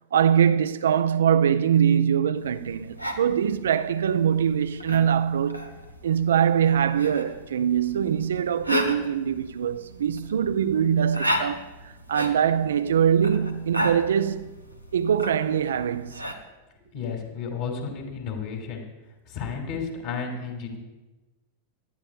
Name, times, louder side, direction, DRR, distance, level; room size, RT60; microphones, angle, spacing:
voice 1, 0.1-5.7 6.0-14.5 14.9-16.2, right 8 dB, 65° right, 0.4 m, -23 dB
sound 1, 2.4-16.3, equal, 90° left, 1.0 m, -35 dB
voice 2, 16.9-18.8 19.3-20.8, left 5 dB, 45° left, 2.6 m, -32 dB
18.5 x 12.5 x 2.4 m
figure-of-eight pair, 90°, 0 cm